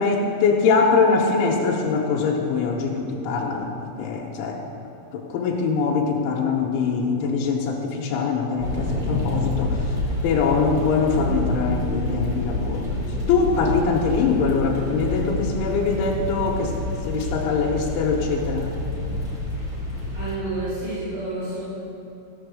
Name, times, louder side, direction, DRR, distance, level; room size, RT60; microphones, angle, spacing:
voice 1, 0.0-3.7 4.0-4.6 5.1-9.9 10.2-12.9 13.3-16.8 17.0-18.7, left 5 dB, 85° left, -1 dB, 3.3 m, -23 dB
sound 1, 8.6-20.4, left 1 dB, 30° right, 1.1 m, -28 dB
voice 2, 20.1-21.6, right 2 dB, 70° right, -11 dB, 5.4 m, -30 dB
14.5 x 8.6 x 6.5 m, 2.8 s
omnidirectional pair, 5.5 m